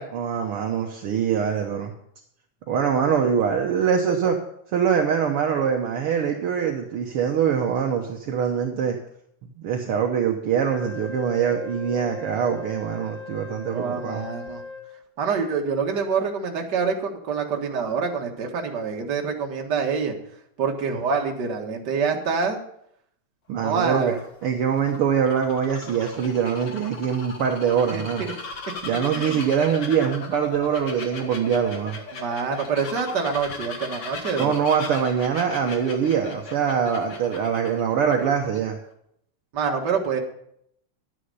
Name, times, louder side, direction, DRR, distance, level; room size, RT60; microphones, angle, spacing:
voice 1, 0.1-1.9 2.7-4.4 4.7-9.0 9.6-14.3 23.5-24.1 24.4-28.3 28.8-32.0 34.4-38.8, right 7 dB, 65° right, 2 dB, 1.4 m, -23 dB
Wind instrument woodwind instrument, 10.6-15.0, left 3 dB, ahead, 5.2 m, -38 dB
voice 2, 13.7-14.6 15.2-20.1 20.6-22.6 23.6-24.2 27.9-28.3 29.1-29.4 32.1-34.5 39.5-40.2, right 5 dB, 40° right, 1 dB, 1.7 m, -26 dB
Bird vocalization bird call bird song, 23.6-38.6, left 4 dB, 50° left, 1.3 m, -38 dB
11.5 x 9.9 x 5.5 m, 0.71 s
omnidirectional pair, 3.7 m